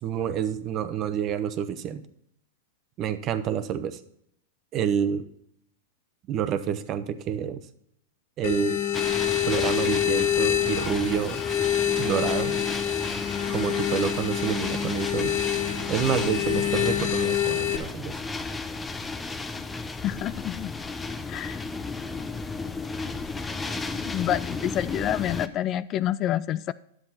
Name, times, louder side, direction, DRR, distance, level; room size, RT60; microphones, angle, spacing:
voice 1, 0.0-2.0 3.0-4.0 4.7-5.2 6.3-7.6 8.4-8.8 9.5-11.4 12.0-12.6 13.5-15.3 15.9-18.1, right 9 dB, 35° right, 11 dB, 0.9 m, -28 dB
sound 1, 8.4-17.8, left 10 dB, 60° left, 1.1 m, -26 dB
sound 2, 8.9-25.5, left 3 dB, 10° left, 0.7 m, -34 dB
voice 2, 20.0-20.7 21.3-21.6 24.1-26.7, left 12 dB, 35° left, 17 dB, 0.3 m, -28 dB
10.5 x 7.7 x 4.3 m, 0.70 s
hypercardioid pair, 120°, 0 cm